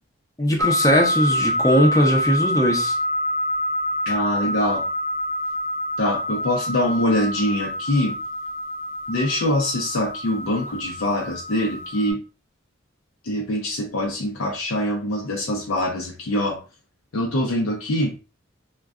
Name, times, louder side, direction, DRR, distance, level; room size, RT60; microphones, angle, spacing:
voice 1, 0.4-3.0, equal, 15° left, 0.6 m, -19 dB
sound 1, 0.6-12.1, equal, 85° right, 0.5 m, -26 dB
voice 2, 4.1-4.8 6.0-8.2 9.1-12.2 13.2-16.6 17.1-18.1, left 1 dB, 90° left, 0.6 m, -24 dB
2.3 x 2.2 x 3.6 m
head